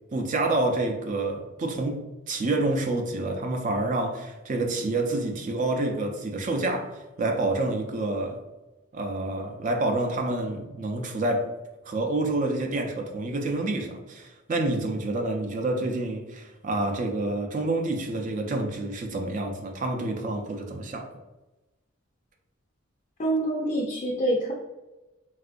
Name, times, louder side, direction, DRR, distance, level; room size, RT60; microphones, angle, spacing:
voice 1, 0.1-8.4 8.9-11.5 11.9-21.1, right 2 dB, 35° right, 0.4 m, -28 dB
voice 2, 23.2-24.5, right 1 dB, 35° left, 0.4 m, -26 dB
3.5 x 2.4 x 2.5 m
head